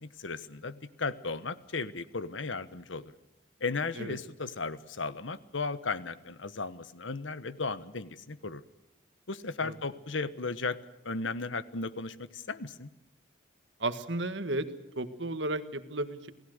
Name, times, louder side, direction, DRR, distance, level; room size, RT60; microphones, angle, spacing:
voice 1, 0.0-3.0 3.6-8.6 9.3-10.8 11.0-12.9, left 4 dB, 90° left, 15 dB, 1.3 m, -35 dB
voice 2, 13.8-14.7 14.9-16.3, right 2 dB, 75° right, 11 dB, 1.7 m, -33 dB
28.0 x 18.5 x 6.6 m, 0.93 s
head